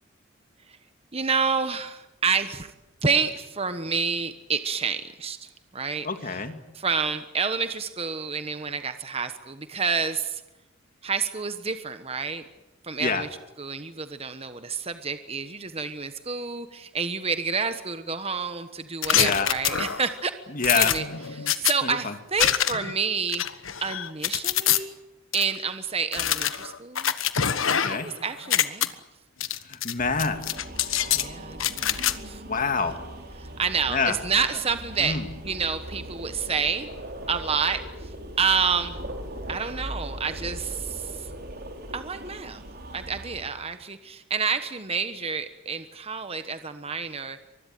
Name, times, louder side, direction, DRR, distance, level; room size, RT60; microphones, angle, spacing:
voice 1, 1.1-2.7 3.0-6.1 6.7-10.4 11.0-12.4 12.8-13.3 13.6-20.3 20.7-21.0 21.4-23.4 23.8-25.0 25.3-27.1 27.9-28.9 31.1-32.4 33.4-35.2 35.4-36.9 37.3-38.1 38.4-39.0 39.5-41.3 41.9-42.6 42.9-47.4, right 5 dB, 30° right, 10 dB, 1.2 m, -29 dB
voice 2, 6.0-6.6 13.0-13.3 19.1-19.5 20.5-21.0 21.8-22.1 27.7-28.1 29.6-30.4 32.5-33.0 33.9-34.2 35.0-35.3, left 4 dB, 40° left, 8 dB, 2.2 m, -27 dB
sound 1, 19.0-20.1 20.6-21.7 22.4-22.9 23.3-24.8 25.3-25.4 26.1-28.1 28.4-28.9 29.4-29.9 30.2-31.3 31.6-32.1, left 10 dB, 80° left, 1.4 m, -25 dB
sound 2, 30.0-43.5, right 1 dB, 50° right, 3.8 m, -39 dB
25.0 x 21.0 x 9.2 m, 0.94 s
head